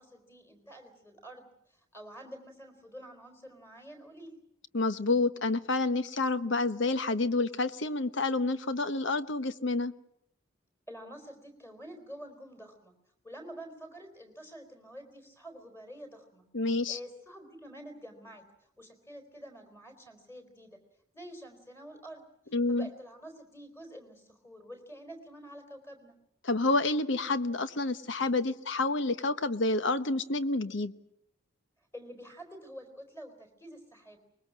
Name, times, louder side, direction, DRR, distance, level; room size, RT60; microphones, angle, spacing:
voice 1, 0.0-4.4 10.9-12.9 13.2-16.5 16.9-18.5 18.8-20.8 21.1-26.1 31.9-34.2, equal, 10° left, 5 dB, 4.2 m, -48 dB
voice 2, 4.7-9.9 16.5-17.0 22.5-22.9 26.4-30.9, left 2 dB, 60° left, 12 dB, 1.1 m, -29 dB
24.0 x 21.0 x 7.5 m, 0.79 s
head